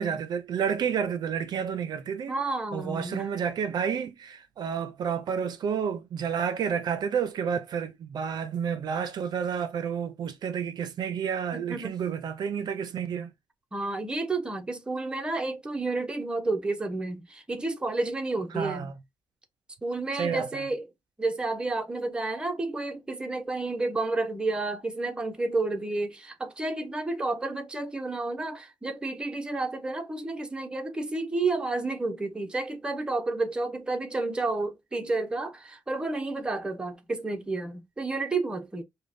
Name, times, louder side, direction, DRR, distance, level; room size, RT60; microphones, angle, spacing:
voice 1, 0.0-2.3 2.7-13.3 18.5-18.9 20.2-20.6, right 7 dB, 60° right, 0.5 m, -30 dB
voice 2, 2.3-3.3 11.5-11.9 13.7-18.9 19.8-20.9 21.2-38.8, right 2 dB, 10° right, 0.6 m, -31 dB
5.1 x 2.1 x 2.6 m
wide cardioid pair, 165°, 8 cm